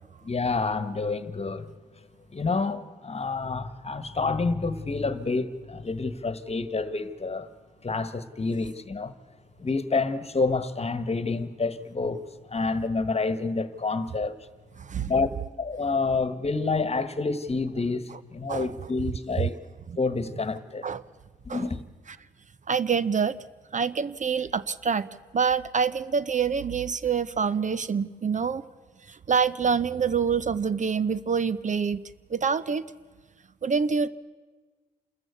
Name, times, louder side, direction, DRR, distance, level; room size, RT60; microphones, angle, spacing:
voice 1, 0.2-1.7 2.3-7.5 7.8-9.1 9.6-12.2 12.5-14.4 15.1-15.3 15.6-19.6 20.0-20.9 21.5-21.8, left 4 dB, 35° left, 1.4 m, -28 dB
voice 2, 14.8-15.1 18.5-18.7 20.8-21.0 21.5-21.7 22.7-23.4 23.7-25.1 25.3-28.6 29.3-32.0 32.3-32.8 33.6-34.1, right 6 dB, 45° right, 0.7 m, -26 dB
27.5 x 14.0 x 8.3 m
supercardioid pair, 45°, 18 cm